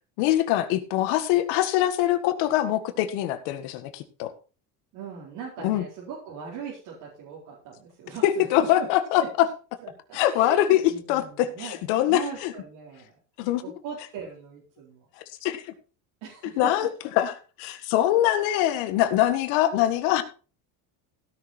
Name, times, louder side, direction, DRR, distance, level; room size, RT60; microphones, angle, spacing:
voice 1, 0.2-4.3 5.6-5.8 8.2-9.2 10.1-10.8 11.1-12.5 13.4-13.6 15.4-15.7 16.6-16.9 17.2-17.3 17.6-20.2, left 13 dB, 80° left, 9 dB, 1.8 m, -23 dB
voice 2, 4.9-8.9 9.2-9.3 9.8-15.1 16.2-16.7, right 7 dB, 75° right, -5 dB, 4.4 m, -40 dB
16.5 x 6.6 x 4.4 m, 0.36 s
cardioid pair, 115°, 42 cm